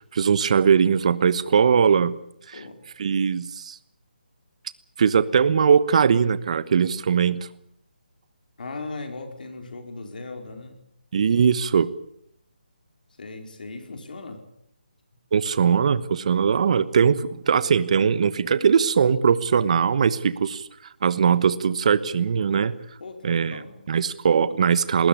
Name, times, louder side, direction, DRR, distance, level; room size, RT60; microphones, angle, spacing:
voice 1, 0.1-2.1 3.0-3.8 5.0-7.4 11.1-11.9 15.3-20.6 21.0-22.8 23.2-23.6 23.9-25.1, right 6 dB, 40° right, 16 dB, 1.2 m, -20 dB
voice 2, 8.6-10.8 13.2-14.4 23.0-23.7, left 3 dB, 55° left, 5 dB, 4.6 m, -38 dB
20.0 x 19.5 x 8.6 m, 0.73 s
hypercardioid pair, 165°, 5 cm